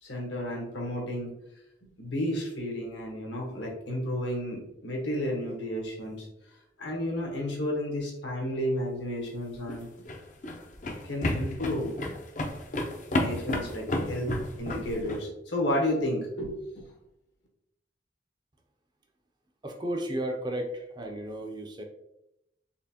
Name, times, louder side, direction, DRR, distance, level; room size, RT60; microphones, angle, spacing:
voice 1, 0.0-1.3 2.0-6.3 6.8-9.9 11.0-11.9 13.1-16.9, left 1 dB, 75° left, -1 dB, 1.2 m, -32 dB
sound 1, 9.5-15.2, left 1 dB, 40° left, 0.5 m, -31 dB
voice 2, 19.6-21.8, right 1 dB, 25° right, 2 dB, 0.4 m, -33 dB
4.2 x 3.0 x 2.8 m, 0.84 s
head